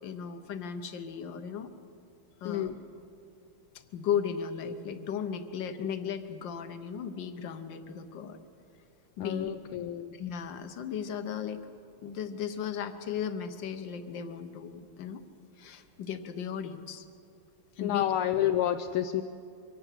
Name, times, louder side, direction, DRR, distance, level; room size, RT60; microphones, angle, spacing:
voice 1, 0.0-1.7 2.4-2.7 3.9-8.4 9.2-9.5 10.2-11.7 12.0-15.2 15.6-17.1 17.8-18.1, left 8 dB, 60° left, 9 dB, 1.7 m, -36 dB
voice 2, 2.4-2.7 9.2-10.2 17.8-19.2, left 11 dB, 75° left, 8 dB, 1.5 m, -29 dB
24.0 x 17.5 x 7.5 m, 2.7 s
omnidirectional pair, 2.4 m